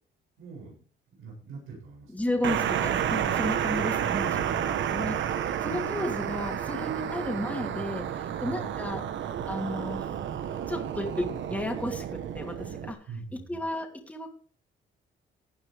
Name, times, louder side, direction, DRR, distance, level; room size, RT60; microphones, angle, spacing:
voice 1, 0.4-0.8 1.1-2.3 4.6-5.3 8.4-9.0 13.1-13.6, right 4 dB, 85° right, -3 dB, 7.5 m, -44 dB
voice 2, 2.1-5.2 5.6-10.1 10.7-13.1 13.3-14.3, left 1 dB, 5° left, 1 dB, 2.8 m, -33 dB
sound 1, 2.4-12.9, right 9 dB, 70° right, 1.2 m, -31 dB
16.5 x 9.5 x 3.5 m, 0.43 s
cardioid pair, 90°, 20 cm